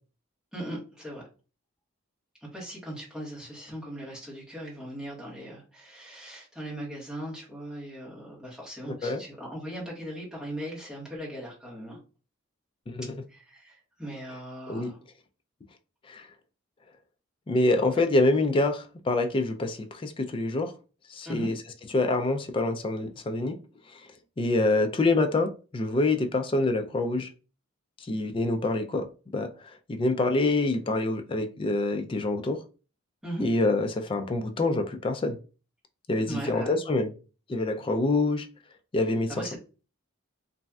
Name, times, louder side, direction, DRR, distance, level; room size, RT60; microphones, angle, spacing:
voice 1, 0.5-1.2 2.4-12.0 13.3-15.0 21.2-21.5 33.2-33.5 36.3-36.8 39.3-39.6, right 1 dB, 5° right, 1.3 m, -39 dB
voice 2, 17.5-20.7 21.1-21.6 21.9-23.6 24.4-27.3 28.1-32.6 33.4-35.4 36.1-37.1 37.5-38.5 38.9-39.5, left 2 dB, 25° left, 0.3 m, -26 dB
3.1 x 2.6 x 2.3 m
head